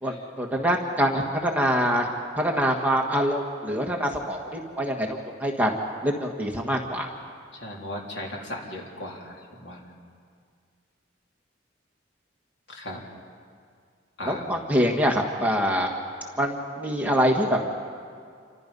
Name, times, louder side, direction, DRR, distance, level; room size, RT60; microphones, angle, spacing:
voice 1, 0.0-2.1 2.4-5.7 6.0-7.1 14.2-15.9 16.4-17.6, equal, 10° right, 0 dB, 1.6 m, -25 dB
voice 2, 7.5-9.9 12.7-13.0 14.2-14.4, left 1 dB, 60° left, -2 dB, 3.9 m, -37 dB
28.5 x 25.0 x 5.4 m, 2.2 s
head